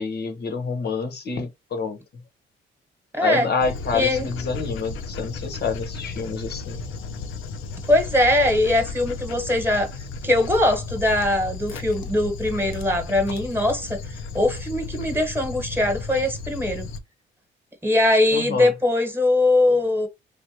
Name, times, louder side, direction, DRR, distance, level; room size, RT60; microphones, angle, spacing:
voice 1, 0.0-2.0 3.2-6.8 18.3-18.7, left 4 dB, 55° left, 0.9 m, -28 dB
voice 2, 3.1-3.5 3.9-4.3 7.9-9.9 10.2-14.0 14.3-16.9 17.8-20.1, left 1 dB, 10° right, 1.2 m, -21 dB
Dog, 3.6-17.0, left 4 dB, 85° left, 0.6 m, -34 dB
3.3 x 2.5 x 2.7 m
cardioid pair, 90°, 20 cm